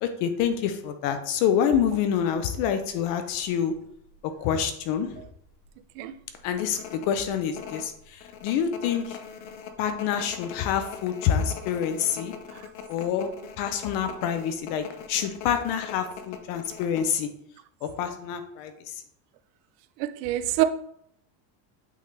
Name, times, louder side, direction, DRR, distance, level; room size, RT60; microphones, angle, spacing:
voice 1, 0.0-3.7 4.4-5.2 6.4-9.2 9.8-12.3 12.9-17.3 17.8-18.9, left 8 dB, 45° left, 0.6 m, -27 dB
sound 1, 2.1-2.3 2.8-2.9 3.2-4.2 4.5-4.6 5.0-5.3 5.6-5.7 6.3-17.1, left 8 dB, 75° left, 1.0 m, -41 dB
voice 2, 20.0-20.6, right 16 dB, 85° right, 0.6 m, -25 dB
8.4 x 3.7 x 3.2 m
cardioid pair, 180°, 48 cm